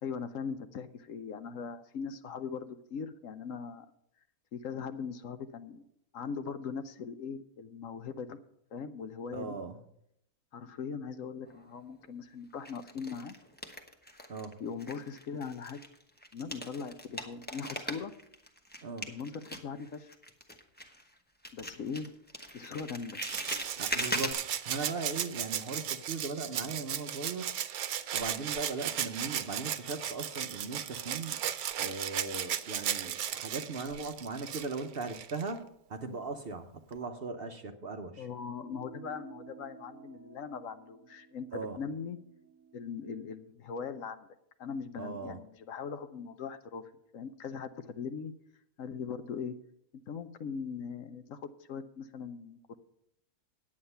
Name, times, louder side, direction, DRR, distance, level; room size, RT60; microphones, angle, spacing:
voice 1, 0.0-3.9 4.5-5.8 6.1-8.4 8.7-9.6 10.5-13.3 14.6-15.8 16.3-18.1 19.1-20.1 21.5-22.1 22.5-23.2 38.2-42.2 42.7-44.3 44.6-46.8 47.1-48.3 48.8-49.5 50.1-52.8, left 6 dB, 65° left, 10 dB, 1.0 m, -40 dB
voice 2, 9.3-9.8 14.3-14.6 18.8-19.1 23.8-27.5 28.1-31.4 31.8-38.3 41.5-41.8 45.0-45.4, right 3 dB, 50° right, 6 dB, 0.8 m, -39 dB
sound 1, 11.5-12.1 12.6-14.5 14.8-21.2 21.4-24.3, equal, 10° left, 0.9 m, -40 dB
Rattle (instrument), 23.2-35.5 36.9-37.0, right 10 dB, 80° right, 1.1 m, -36 dB
sound 2, 38.6-43.4, right 6 dB, 20° right, 1.7 m, -53 dB
9.7 x 8.7 x 5.5 m, 0.74 s
omnidirectional pair, 1.6 m